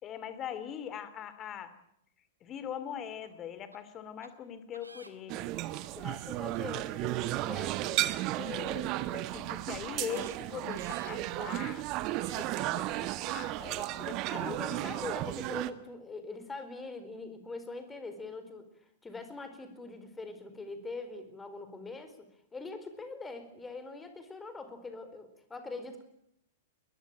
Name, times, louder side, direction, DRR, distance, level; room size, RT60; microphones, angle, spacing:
voice 1, 0.0-1.7 2.4-5.6 8.3-11.8 12.3-14.9, left 9 dB, 25° left, 13 dB, 3.0 m, -42 dB
sound 1, 3.2-3.3 3.7-3.8 4.2-4.3 4.7-5.4 5.8-5.9 6.5-6.6 7.1-7.3 7.7-7.8 8.3-8.4 9.0-9.1 9.5-9.6 10.0-10.3 10.7-11.1 11.8-11.9 12.2-12.5 13.1-13.2, right 2 dB, 85° right, 2.7 m, -53 dB
sound 2, 5.3-15.7, right 16 dB, 35° right, 1.5 m, -34 dB
voice 2, 5.9-8.1 14.3-18.6 19.0-22.2 22.5-26.1, left 3 dB, 10° left, 9 dB, 4.3 m, -43 dB
21.5 x 21.5 x 9.1 m, 0.75 s
figure-of-eight pair, 100°, 0 cm